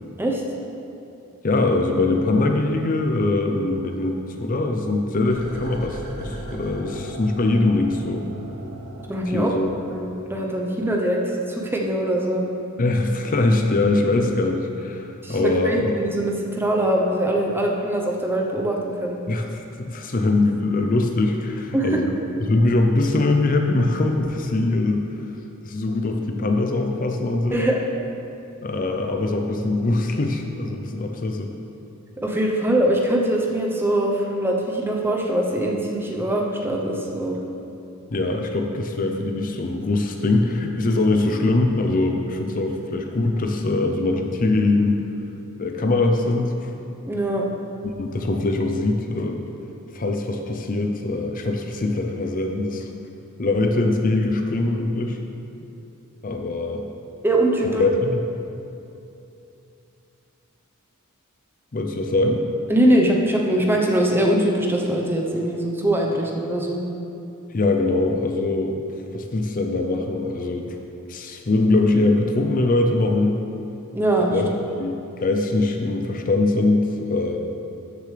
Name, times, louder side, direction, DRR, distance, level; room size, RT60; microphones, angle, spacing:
voice 1, 1.4-8.3 9.3-9.7 12.8-15.9 19.3-22.1 22.4-25.1 25.6-27.6 28.6-31.5 38.1-45.0 45.6-46.7 47.8-49.4 49.9-52.9 53.4-55.2 56.2-56.9 57.6-58.2 61.7-62.4 67.5-68.8 69.1-70.7 71.1-73.4 74.3-74.5 74.8-77.4, left 2 dB, 40° left, 4 dB, 0.5 m, -22 dB
sound 1, 5.2-10.5 10.8-10.9, right 1 dB, 80° right, 1.3 m, -37 dB
voice 2, 9.1-9.5 9.9-12.4 15.2-19.2 21.7-22.0 27.5-27.8 32.2-37.4 47.0-47.4 57.2-57.8 62.7-66.8 73.9-74.3, right 1 dB, 10° right, 0 dB, 0.8 m, -22 dB
13.5 x 6.7 x 3.3 m, 2.8 s
head